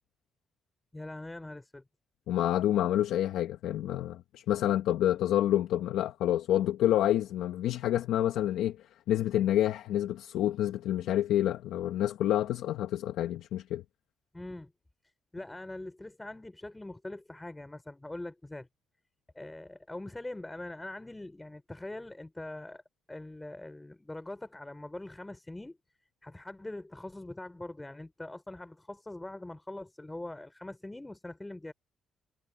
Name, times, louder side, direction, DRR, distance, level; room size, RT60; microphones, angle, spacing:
voice 1, 0.9-1.8 14.3-14.7 15.3-18.7 19.3-22.8 23.1-25.8 26.2-31.7, left 2 dB, 15° left, 4.4 m, -42 dB
voice 2, 2.3-8.8 9.1-13.8, left 12 dB, 85° left, 1.0 m, -28 dB
cardioid pair, 90°, 0 cm